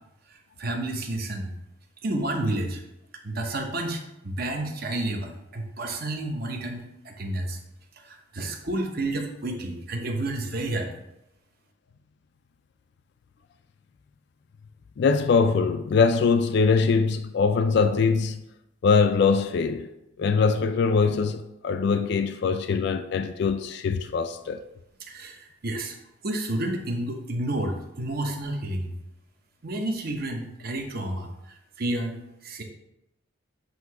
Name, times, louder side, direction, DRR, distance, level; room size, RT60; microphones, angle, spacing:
voice 1, 0.3-1.5 2.0-2.8 3.2-7.6 8.0-11.0 25.0-26.0 26.2-28.9 29.6-32.6, right 1 dB, 50° right, 0.9 m, -30 dB
voice 2, 15.0-18.4 18.8-19.9 20.2-24.6, left 5 dB, 55° left, 0.3 m, -22 dB
8.0 x 2.8 x 4.7 m
head